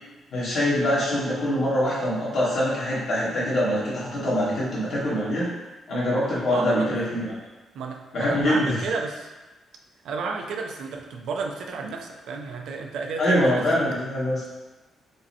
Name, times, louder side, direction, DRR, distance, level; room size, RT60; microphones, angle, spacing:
voice 1, 0.3-5.5 5.9-7.3 8.1-8.8 13.2-14.4, equal, 55° left, -8 dB, 1.4 m, -24 dB
voice 2, 6.5-7.0 7.7-9.3 10.0-13.7, right 4 dB, 75° right, 2 dB, 0.4 m, -32 dB
5.2 x 2.1 x 2.7 m, 1.2 s
cardioid pair, 155°, 0 cm